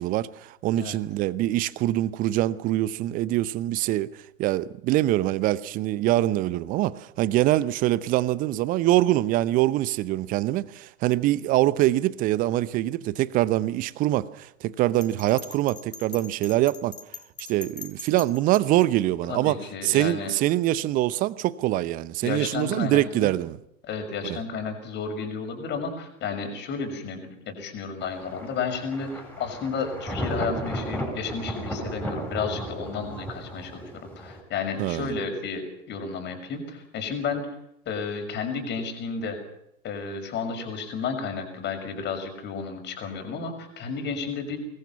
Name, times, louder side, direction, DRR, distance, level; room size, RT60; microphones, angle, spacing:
voice 1, 0.0-4.1 4.4-16.9 17.5-23.6 24.2-24.4 34.8-35.1, right 15 dB, 20° right, 0.8 m, -24 dB
Bell, 15.0-18.6, left 5 dB, 75° left, 5.2 m, -41 dB
voice 2, 19.3-20.3 22.2-23.3 23.9-37.5 37.9-39.4 39.8-44.6, left 5 dB, 25° left, 6.4 m, -32 dB
Thunder, 28.0-34.4, right 1 dB, 5° left, 8.0 m, -34 dB
26.0 x 21.0 x 5.8 m
figure-of-eight pair, 110°, 43 cm